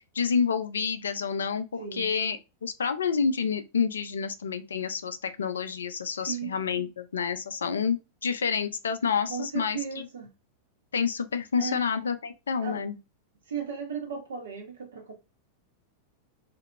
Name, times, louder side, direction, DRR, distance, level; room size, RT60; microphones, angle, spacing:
voice 1, 0.1-10.1 10.9-13.0, left 6 dB, 70° left, 0.4 m, -28 dB
voice 2, 1.8-2.1 6.2-6.9 9.3-10.3 11.6-11.8 12.6-12.8 13.5-15.1, right 6 dB, 65° right, 1.0 m, -36 dB
2.8 x 2.6 x 2.2 m
figure-of-eight pair, 90°, 0 cm